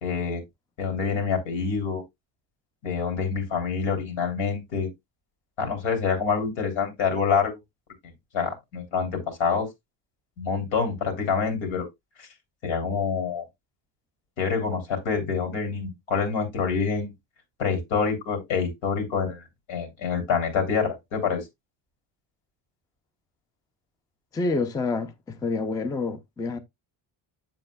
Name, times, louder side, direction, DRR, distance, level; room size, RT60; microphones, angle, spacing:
voice 1, 0.0-0.4 0.8-2.0 2.8-4.9 5.6-7.6 8.3-9.7 10.4-11.9 12.2-12.3 12.6-13.4 14.4-17.1 17.6-21.4, left 5 dB, 80° left, 3.0 m, -26 dB
voice 2, 24.3-26.6, left 3 dB, 10° left, 0.3 m, -28 dB
7.6 x 7.3 x 2.2 m
cardioid pair, 170°, 47 cm